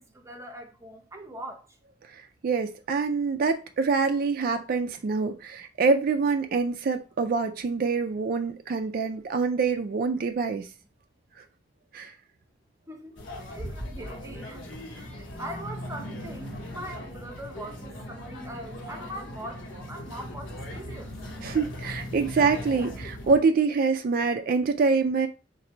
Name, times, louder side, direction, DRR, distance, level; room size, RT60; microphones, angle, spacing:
voice 1, 0.0-1.6 12.9-13.2 13.5-14.7 15.0-21.1, right 1 dB, 15° right, 0.7 m, -41 dB
voice 2, 2.1-10.7 11.9-12.1 21.4-25.3, right 4 dB, 50° right, 0.3 m, -25 dB
sound 1, 13.2-23.4, left 1 dB, 75° left, 1.0 m, -39 dB
3.8 x 2.6 x 4.3 m
head